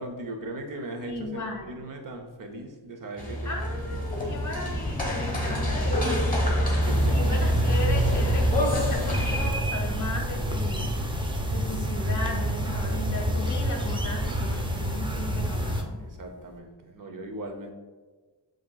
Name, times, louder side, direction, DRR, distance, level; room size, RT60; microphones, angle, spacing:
voice 1, 0.0-4.3 6.5-7.2 16.0-17.7, right 1 dB, 45° right, 4 dB, 0.8 m, -39 dB
voice 2, 1.0-1.8 3.4-6.7 7.1-10.9 11.5-16.0, left 2 dB, 40° left, 2 dB, 1.0 m, -35 dB
sound 1, 3.2-9.5, equal, 15° left, 1.3 m, -26 dB
sound 2, 6.8-15.8, right 1 dB, 10° right, 0.5 m, -28 dB
7.0 x 3.0 x 2.3 m, 1.3 s
wide cardioid pair, 80°, 47 cm